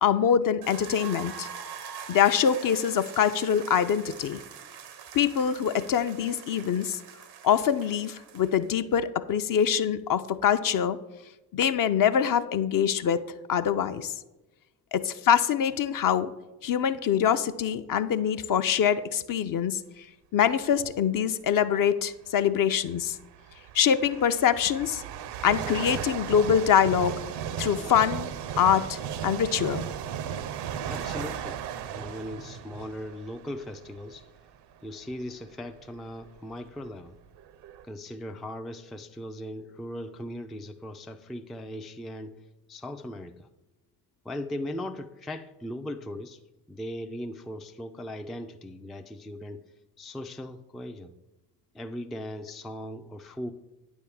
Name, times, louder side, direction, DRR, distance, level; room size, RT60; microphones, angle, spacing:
voice 1, 0.0-1.5 2.1-4.4 5.1-7.0 7.4-11.0 11.5-14.1 14.9-16.3 16.6-20.0 20.3-23.2 23.7-25.0 25.4-27.2 27.6-28.3 28.6-29.8, left 8 dB, 40° left, 10 dB, 0.6 m, -24 dB
sound 1, 0.6-8.7, right 7 dB, 80° right, 1.0 m, -44 dB
sound 2, 20.7-21.0 22.1-22.2 23.0-34.4 35.0-35.2 36.0-36.1 36.3-37.8, right 8 dB, 55° right, 0.7 m, -36 dB
voice 2, 30.9-34.3 34.8-37.2 37.8-42.4 42.7-43.5 44.2-46.4 46.7-49.6 50.0-51.1 51.7-53.5, left 1 dB, ahead, 6 dB, 0.3 m, -38 dB
9.4 x 3.6 x 7.0 m, 1.0 s
hypercardioid pair, 50°, 49 cm